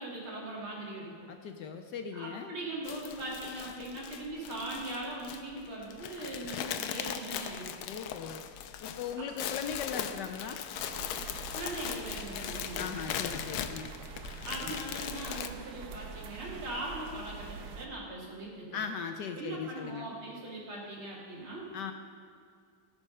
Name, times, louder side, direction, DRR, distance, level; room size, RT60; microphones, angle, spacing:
voice 1, 0.0-1.1 2.1-7.7 11.5-12.9 14.4-18.8 19.3-21.6, right 1 dB, 80° right, -4 dB, 3.4 m, -40 dB
voice 2, 1.3-2.6 7.9-8.4 8.8-10.6 12.8-13.9 18.7-20.1 21.7-21.9, left 6 dB, 70° left, 6 dB, 1.1 m, -38 dB
sound 1, 2.9-15.5, left 10 dB, 85° left, 1.5 m, -39 dB
sound 2, 10.7-17.9, right 5 dB, 60° right, 1.2 m, -45 dB
17.5 x 6.7 x 5.4 m, 2.3 s
omnidirectional pair, 2.3 m